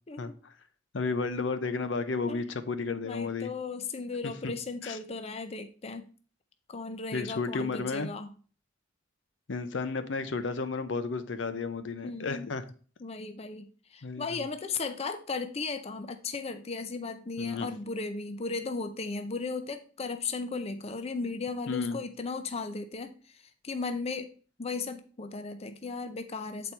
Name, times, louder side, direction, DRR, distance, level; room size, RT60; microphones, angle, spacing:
voice 1, 0.2-0.5 0.9-3.5 4.2-4.5 4.8-5.0 7.1-8.1 9.5-12.6 14.0-14.4 17.4-17.7 21.7-22.0, left 4 dB, 70° left, 0.7 m, -32 dB
voice 2, 3.0-6.0 6.7-8.3 12.0-12.5 13.0-24.3 24.6-26.7, left 4 dB, 35° left, 0.5 m, -36 dB
8.2 x 4.3 x 4.4 m
head